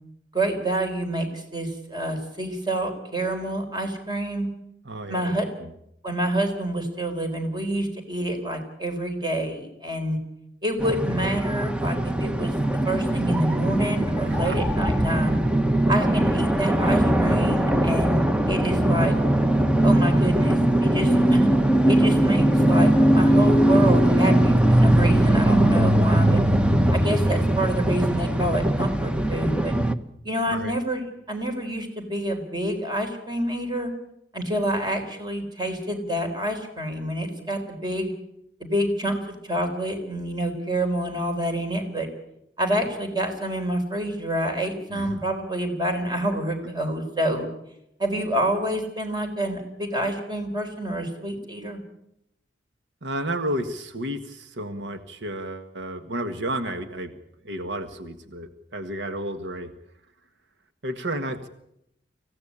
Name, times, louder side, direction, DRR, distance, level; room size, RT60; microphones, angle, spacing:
voice 1, 0.3-4.5 5.1-5.5 6.0-10.2 10.6-12.5 12.8-15.4 15.9-19.1 19.8-21.5 21.9-26.4 26.9-29.7 30.2-33.9 34.3-38.1 38.6-42.1 42.6-47.5 48.0-51.8, right 1 dB, 25° right, 5 dB, 4.2 m, -27 dB
voice 2, 4.8-5.3 5.6-5.7 14.2-14.6 30.5-30.7 44.9-45.2 53.0-57.1 57.4-59.7 60.8-61.5, right 1 dB, 85° right, 8 dB, 1.5 m, -32 dB
sound 1, 10.8-29.9, right 1 dB, 5° right, 0.9 m, -20 dB
25.0 x 16.5 x 8.7 m, 0.80 s
head